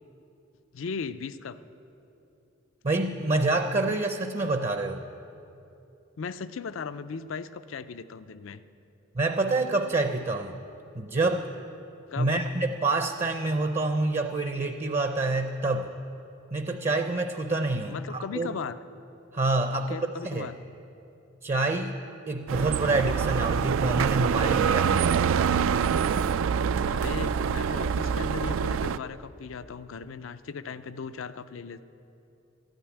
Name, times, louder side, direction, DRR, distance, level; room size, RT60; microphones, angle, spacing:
voice 1, 0.7-1.6 6.2-8.6 12.1-12.4 17.9-18.8 19.7-20.5 26.8-31.8, left 5 dB, 80° left, 13 dB, 0.5 m, -37 dB
voice 2, 2.8-5.0 9.1-10.6 10.9-11.5 12.2-15.9 16.5-18.6 19.3-20.5 21.4-22.0 22.3-25.1, right 2 dB, 35° right, 7 dB, 0.5 m, -27 dB
sound 1, 22.5-29.0, right 7 dB, 85° right, 0.3 m, -25 dB
13.5 x 9.0 x 9.9 m, 2.9 s
head